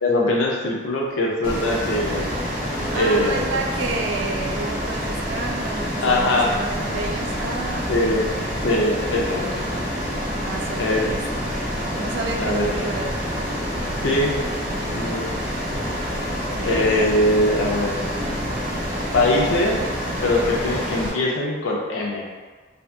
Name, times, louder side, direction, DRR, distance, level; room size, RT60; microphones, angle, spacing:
voice 1, 0.0-2.3 2.9-3.5 6.0-6.5 7.9-8.3 8.6-9.6 10.8-11.1 12.4-12.7 14.0-14.4 14.9-15.3 16.6-18.0 19.1-19.8 20.2-22.2, left 1 dB, 80° left, -2 dB, 0.5 m, -22 dB
Ocean, 1.4-21.1, equal, 45° right, 0.8 m, -27 dB
sound 1, 1.5-20.8, left 1 dB, 5° right, 0.5 m, -40 dB
voice 2, 2.9-8.5 10.4-11.5 12.0-13.3 16.5-17.1, right 3 dB, 65° right, 2 dB, 0.3 m, -31 dB
2.7 x 2.4 x 2.2 m, 1.4 s
head